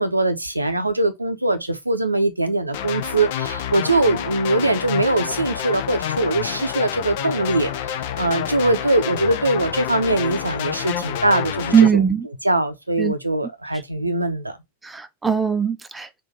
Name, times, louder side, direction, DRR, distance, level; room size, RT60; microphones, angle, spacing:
voice 1, 0.0-12.0 12.4-14.6, right 2 dB, 85° right, 0.7 m, -22 dB
sound 1, 2.7-11.9, left 10 dB, 50° left, 0.5 m, -28 dB
voice 2, 11.7-12.3 13.0-13.1 14.8-16.2, right 7 dB, 10° right, 0.5 m, -19 dB
3.7 x 2.5 x 4.5 m
figure-of-eight pair, 90°, 0 cm